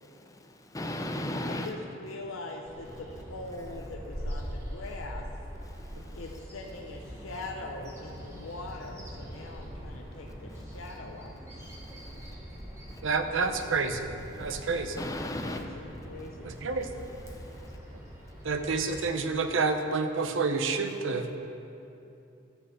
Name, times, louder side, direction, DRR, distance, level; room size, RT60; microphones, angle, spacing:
voice 1, 0.0-1.7 5.7-6.2 10.5-10.6 11.6-12.1 12.9-13.0 14.4-14.6 15.0-15.6 17.3-17.8, left 1 dB, 15° left, 5 dB, 0.5 m, -37 dB
voice 2, 1.5-5.3 6.1-11.4 15.4-15.7 16.0-16.6, left 2 dB, 90° left, 2 dB, 0.7 m, -42 dB
Bird vocalization bird call bird song, 2.6-19.1, equal, 15° right, 1.2 m, -42 dB
voice 3, 13.0-14.1 14.4-15.0 16.4-16.9 18.4-21.4, right 4 dB, 75° right, 7 dB, 0.7 m, -29 dB
11.0 x 4.6 x 7.6 m, 2.8 s
head